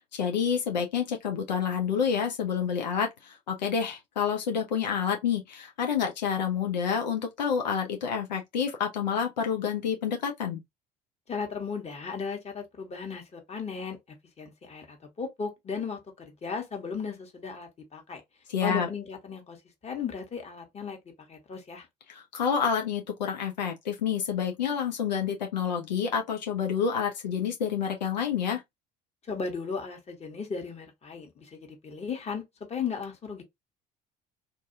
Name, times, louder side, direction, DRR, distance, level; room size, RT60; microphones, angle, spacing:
voice 1, 0.2-10.6 18.5-18.9 22.1-28.6, left 7 dB, 90° left, 0.5 m, -28 dB
voice 2, 11.3-18.2 18.6-19.6 19.8-21.0 21.3-21.9 29.3-32.4 32.7-33.4, left 5 dB, 30° left, 1.1 m, -36 dB
2.6 x 2.4 x 2.7 m
hypercardioid pair, 60°, 21 cm